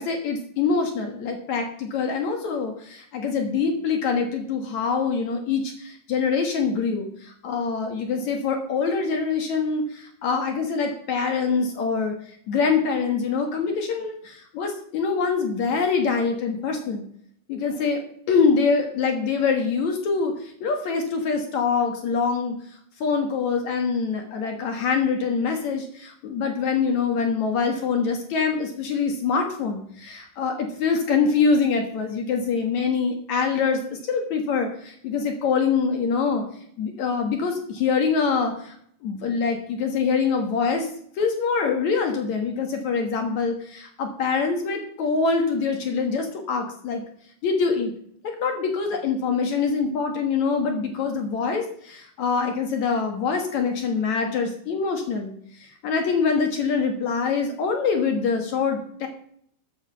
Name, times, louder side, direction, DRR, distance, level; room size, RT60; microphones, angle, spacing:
voice 1, 0.0-12.1 12.5-17.1 17.5-18.0 18.3-22.6 23.0-36.4 36.8-38.8 39.0-40.9 41.2-47.0 47.4-47.9 48.4-55.3 55.6-59.1, left 5 dB, 65° left, 4 dB, 1.8 m, -24 dB
14.0 x 7.4 x 5.8 m, 0.64 s
omnidirectional pair, 5.4 m